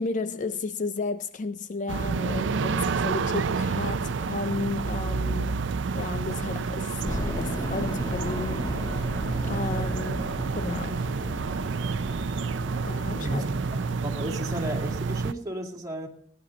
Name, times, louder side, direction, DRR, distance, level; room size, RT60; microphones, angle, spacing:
voice 1, 0.0-5.6 5.9-8.8 9.4-11.1 12.8-13.5, left 3 dB, 45° left, 0.4 m, -33 dB
sound 1, 1.9-15.3, right 4 dB, 75° right, 0.5 m, -29 dB
sound 2, 7.0-13.8, equal, 20° left, 1.2 m, -35 dB
voice 2, 13.2-13.6 13.9-16.1, right 1 dB, 20° right, 2.3 m, -33 dB
18.0 x 10.0 x 3.9 m
head